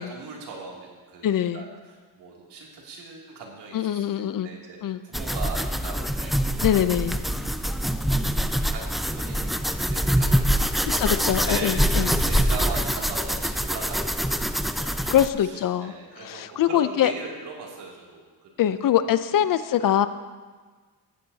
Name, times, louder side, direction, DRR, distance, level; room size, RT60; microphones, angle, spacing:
voice 1, 0.0-6.8 8.0-8.3 8.7-18.6 18.8-19.1, right 4 dB, 80° right, -3 dB, 2.8 m, -40 dB
voice 2, 1.2-1.6 3.7-4.5 4.8-5.0 6.6-7.2 11.0-12.2 15.1-17.1 18.6-20.1, left 10 dB, 55° left, 13 dB, 0.6 m, -23 dB
sound 1, 5.1-15.3, equal, ahead, 0.3 m, -25 dB
15.0 x 10.5 x 2.8 m, 1.4 s
cardioid pair, 95°, 41 cm